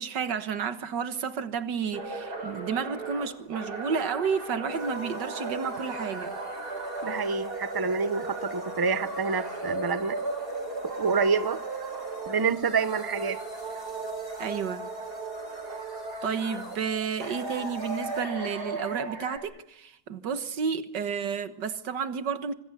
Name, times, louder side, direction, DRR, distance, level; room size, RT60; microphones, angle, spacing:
voice 1, 0.0-6.3 14.4-14.8 16.2-22.5, right 6 dB, 90° right, 2.0 m, -31 dB
sound 1, 1.9-12.5 12.8-16.8 17.2-19.4, right 2 dB, 65° right, 6.1 m, -36 dB
sound 2, 4.7-18.2, equal, 55° left, 3.4 m, -45 dB
voice 2, 7.0-10.2 11.0-11.6 12.3-13.4, right 5 dB, 20° right, 0.7 m, -27 dB
25.5 x 21.0 x 8.4 m
omnidirectional pair, 1.8 m